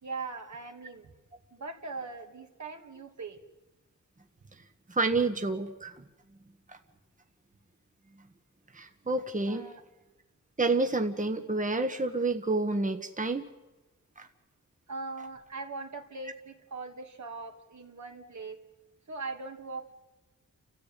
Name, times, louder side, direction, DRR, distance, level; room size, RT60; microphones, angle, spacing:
voice 1, 0.0-1.1 1.5-3.4 9.5-9.8 14.9-18.6 19.1-20.0, right 3 dB, 65° right, 3 dB, 2.9 m, -40 dB
voice 2, 4.9-6.0 6.7-6.8 8.7-9.7 10.6-13.4 14.2-14.3, right 3 dB, 25° right, 6 dB, 1.6 m, -29 dB
29.5 x 14.0 x 9.3 m, 1.1 s
cardioid pair, 60°, 30 cm